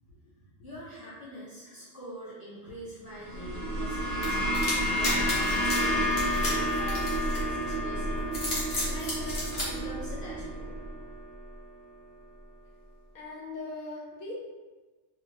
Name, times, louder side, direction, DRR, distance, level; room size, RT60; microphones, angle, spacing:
voice 1, 0.6-8.2 8.8-10.7, right 1 dB, 20° right, -12 dB, 1.0 m, -44 dB
sound 1, 3.1-11.6, left 1 dB, 20° left, 1.5 m, -32 dB
sound 2, 3.3-11.1, right 2 dB, 80° right, 1.1 m, -34 dB
sound 3, 4.2-7.7 8.2-9.7, left 2 dB, 55° left, 1.1 m, -33 dB
voice 2, 13.1-14.3, left 2 dB, 80° left, -4 dB, 1.1 m, -40 dB
2.8 x 2.7 x 2.9 m, 1.3 s
omnidirectional pair, 1.3 m